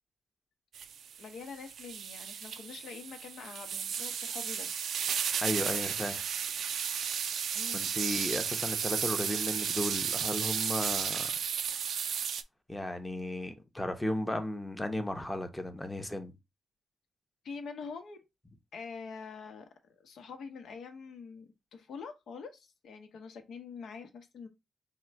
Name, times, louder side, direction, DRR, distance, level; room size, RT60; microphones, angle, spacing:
sound 1, 0.7-12.4, right 7 dB, 80° right, 0.3 m, -34 dB
voice 1, 1.2-4.8 7.5-7.9 17.4-18.2 18.7-19.6 20.0-24.5, left 5 dB, 85° left, 0.8 m, -45 dB
voice 2, 5.4-6.2 7.7-11.3 12.7-16.3, left 1 dB, 10° left, 0.7 m, -35 dB
3.8 x 2.2 x 4.3 m
wide cardioid pair, 130°, 0 cm